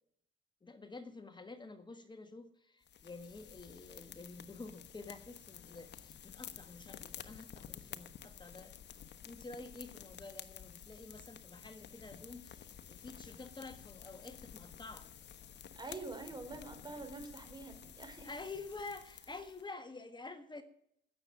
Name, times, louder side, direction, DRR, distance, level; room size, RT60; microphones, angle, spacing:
voice 1, 0.6-8.8 9.2-15.1 18.2-20.6, left 3 dB, 20° left, 8 dB, 1.5 m, -49 dB
sound 1, 2.8-19.7, left 9 dB, 60° left, 1.1 m, -52 dB
voice 2, 15.8-18.3, right 3 dB, 20° right, 5 dB, 4.1 m, -46 dB
16.0 x 7.0 x 9.0 m, 0.71 s
cardioid pair, 90°, 20 cm